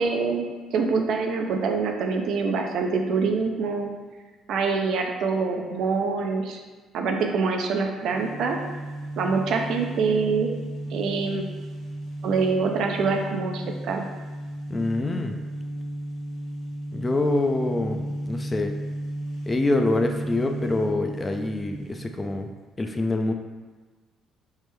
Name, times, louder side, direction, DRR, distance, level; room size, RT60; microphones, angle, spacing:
voice 1, 0.0-3.9 4.5-6.6 6.9-8.6 9.2-10.5 10.9-11.4 12.2-14.1, right 4 dB, 70° right, 3 dB, 0.4 m, -25 dB
sound 1, 7.9-22.5, right 1 dB, 80° left, 1.1 m, -34 dB
voice 2, 14.7-15.4 16.9-18.7 19.5-22.5 22.8-23.3, left 2 dB, 25° left, 4 dB, 0.3 m, -25 dB
3.3 x 2.1 x 3.1 m, 1.4 s
supercardioid pair, 70°, 0 cm